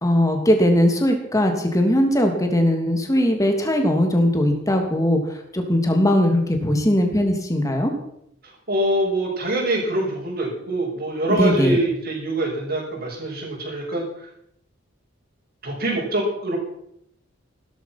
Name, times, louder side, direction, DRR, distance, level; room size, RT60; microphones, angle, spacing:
voice 1, 0.0-7.9 11.3-11.8, equal, 15° left, 4 dB, 2.9 m, -19 dB
voice 2, 8.7-14.3 15.6-16.6, right 1 dB, 50° right, -6 dB, 5.7 m, -24 dB
16.5 x 13.0 x 6.0 m, 0.74 s
head